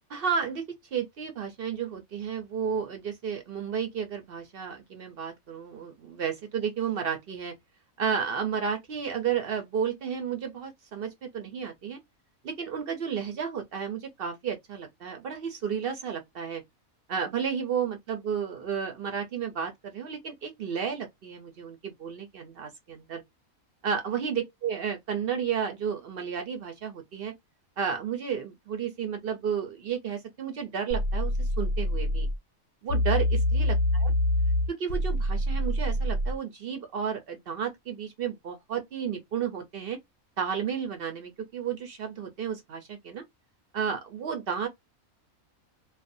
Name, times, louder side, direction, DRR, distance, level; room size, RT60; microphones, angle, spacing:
voice 1, 0.1-0.6 0.9-7.5 8.0-12.0 12.4-16.6 17.1-23.2 23.8-27.3 27.8-32.3 32.8-34.1 34.8-40.0 40.4-43.2 43.7-44.7, right 7 dB, 60° right, 0.6 m, -32 dB
sound 1, 30.9-32.4 32.9-36.4, left 1 dB, 70° left, 0.8 m, -26 dB
2.4 x 2.1 x 2.5 m
omnidirectional pair, 1.5 m